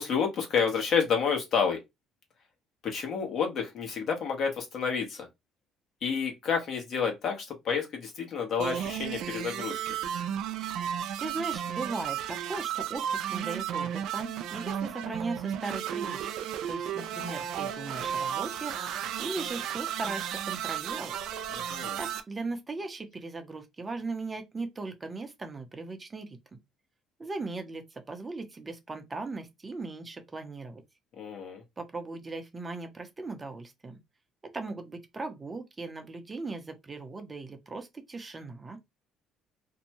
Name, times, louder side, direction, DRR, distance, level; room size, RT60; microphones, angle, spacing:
voice 1, 0.0-1.8 2.8-5.3 6.0-9.9 21.5-22.0 31.2-31.6, left 6 dB, 55° left, 1.1 m, -29 dB
sound 1, 8.6-22.2, right 9 dB, 75° right, 0.4 m, -34 dB
voice 2, 11.2-16.3 16.7-18.7 19.2-21.1 22.0-26.4 27.2-30.8 31.8-34.0 34.5-38.8, right 3 dB, 25° right, 0.6 m, -38 dB
2.7 x 2.2 x 2.8 m
cardioid pair, 95°, 0 cm